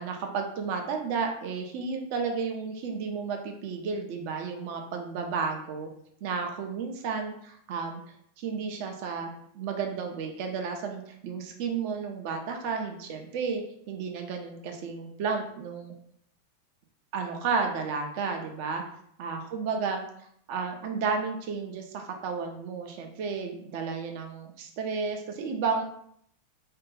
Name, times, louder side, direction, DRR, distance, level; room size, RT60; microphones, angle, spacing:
voice 1, 0.0-5.9 6.2-8.0 8.4-15.9 17.1-18.8 19.2-20.0 20.5-25.8, right 5 dB, 45° right, 4 dB, 0.4 m, -32 dB
2.5 x 2.2 x 3.0 m, 0.68 s
figure-of-eight pair, 90°, 0 cm